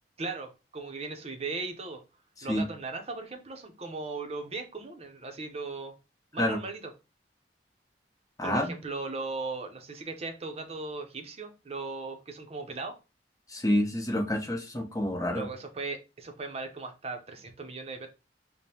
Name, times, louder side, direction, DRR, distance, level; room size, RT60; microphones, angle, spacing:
voice 1, 0.2-2.0 2.4-5.9 6.3-6.9 8.4-12.9 15.3-18.1, right 3 dB, 35° right, 0.7 m, -37 dB
voice 2, 8.4-8.7 13.5-15.5, left 1 dB, 20° left, 0.9 m, -28 dB
5.0 x 2.1 x 2.8 m
head